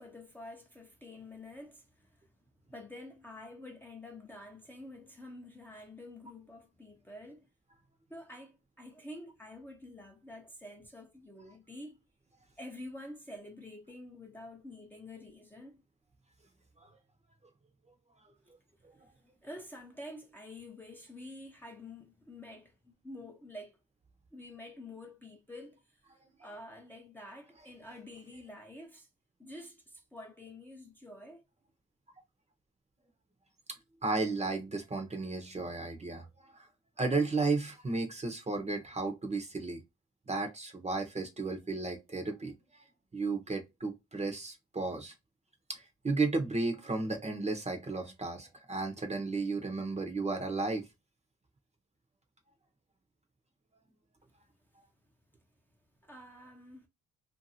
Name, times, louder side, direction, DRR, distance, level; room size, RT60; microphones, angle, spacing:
voice 1, 0.0-2.2 2.7-7.5 8.1-12.0 12.6-15.8 19.4-23.8 24.3-26.0 26.4-29.1 29.4-31.4 56.0-56.9, left 1 dB, 5° left, 0.7 m, -48 dB
voice 2, 34.0-36.3 36.5-36.7 37.0-39.8 40.3-42.5 43.1-45.1 45.7-50.8, right 3 dB, 20° right, 0.8 m, -33 dB
2.6 x 2.5 x 2.7 m
cardioid pair, 90°, 30 cm